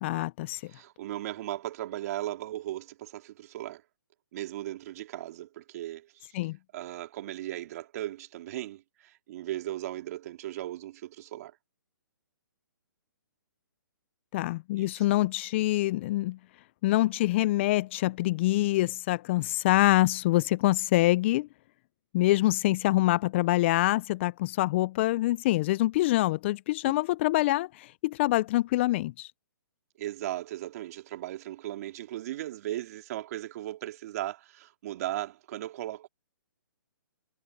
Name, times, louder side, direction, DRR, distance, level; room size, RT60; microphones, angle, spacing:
voice 1, 0.0-0.7 6.3-6.6 14.3-16.4 16.8-21.5 22.1-29.3, left 17 dB, 35° left, 0.4 m, -25 dB
voice 2, 0.7-3.8 4.3-6.3 6.7-11.6 14.8-15.0 26.8-26.9 30.0-36.1, right 14 dB, 45° right, 2.9 m, -37 dB
hypercardioid pair, 140°, 11 cm